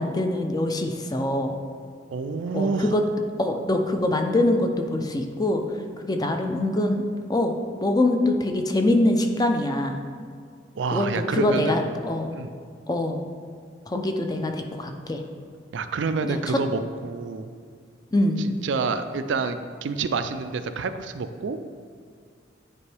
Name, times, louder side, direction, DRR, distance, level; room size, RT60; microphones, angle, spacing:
voice 1, 0.0-1.5 2.5-3.0 3.4-5.6 6.0-7.0 7.3-7.5 7.8-10.0 10.9-12.3 12.9-13.2 13.9-15.2 16.2-16.6 18.1-18.4, left 1 dB, 20° left, 4 dB, 0.5 m, -24 dB
voice 2, 2.1-2.9 10.8-11.8 12.3-12.5 15.7-17.5 18.4-21.6, right 4 dB, 85° right, 9 dB, 0.4 m, -28 dB
9.7 x 4.4 x 3.4 m, 2.1 s
head